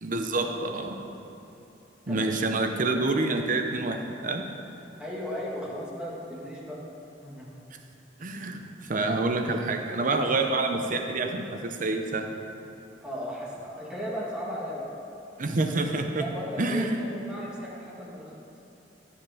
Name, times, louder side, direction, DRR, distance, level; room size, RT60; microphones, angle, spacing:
voice 1, 0.0-1.0 2.1-4.5 8.2-12.3 15.4-16.2 16.6-17.0, right 2 dB, 45° right, 4 dB, 0.8 m, -27 dB
voice 2, 5.0-6.8 7.2-7.5 13.0-14.9 16.2-18.3, equal, 5° right, -6 dB, 1.9 m, -36 dB
12.0 x 7.2 x 5.0 m, 3.0 s
head